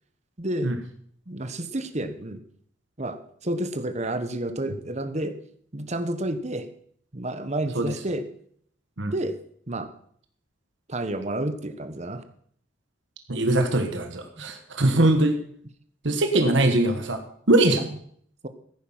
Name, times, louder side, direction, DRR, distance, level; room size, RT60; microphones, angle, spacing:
voice 1, 0.4-0.8 1.3-2.4 3.0-5.3 5.7-6.7 7.1-8.2 9.1-9.4 9.7-9.9 10.9-12.2 17.8-17.9 18.4-18.5, right 1 dB, 35° right, 10 dB, 1.2 m, -30 dB
voice 2, 13.3-15.4 16.0-17.2 17.5-17.8, right 1 dB, 60° right, 6 dB, 1.5 m, -21 dB
15.0 x 9.5 x 5.7 m, 0.62 s
head